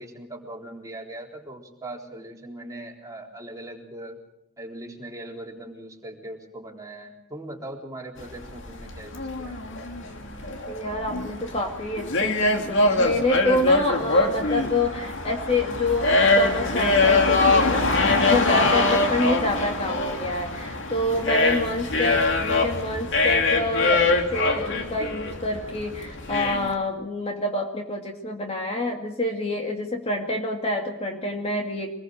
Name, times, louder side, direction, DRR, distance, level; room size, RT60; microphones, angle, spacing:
voice 1, 0.0-4.2 4.6-9.6 18.6-18.8 21.1-21.3, right 1 dB, 15° right, -1 dB, 3.9 m, -40 dB
sound 1, 8.2-26.7, left 2 dB, 60° left, 2.7 m, -23 dB
voice 2, 10.7-17.9 18.2-31.9, left 2 dB, 30° left, 2 dB, 2.2 m, -27 dB
25.0 x 20.5 x 6.6 m, 0.83 s
head